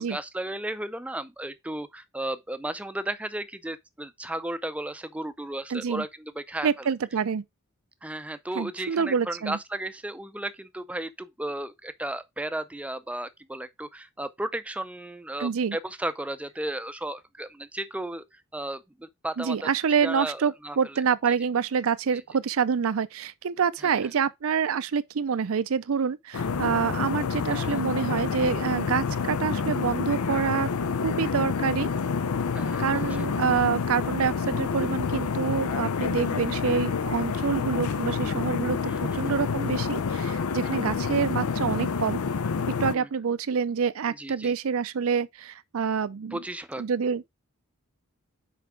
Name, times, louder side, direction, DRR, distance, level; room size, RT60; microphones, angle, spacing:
voice 1, 0.0-6.9 8.0-19.7 20.0-21.0 22.1-22.2 23.8-24.0 27.5-27.8 32.5-33.1 38.9-39.4 40.6-40.8 42.9-43.1 44.1-44.5 46.3-46.8, right 1 dB, 5° right, 0.5 m, -35 dB
voice 2, 5.7-6.0 6.6-7.4 8.6-9.6 15.4-15.8 19.4-30.7 31.0-31.9 32.8-42.2 42.8-46.4 46.8-47.2, right 6 dB, 65° right, 0.5 m, -27 dB
sound 1, 26.3-42.9, left 5 dB, 85° left, 0.6 m, -28 dB
5.9 x 4.6 x 4.7 m
head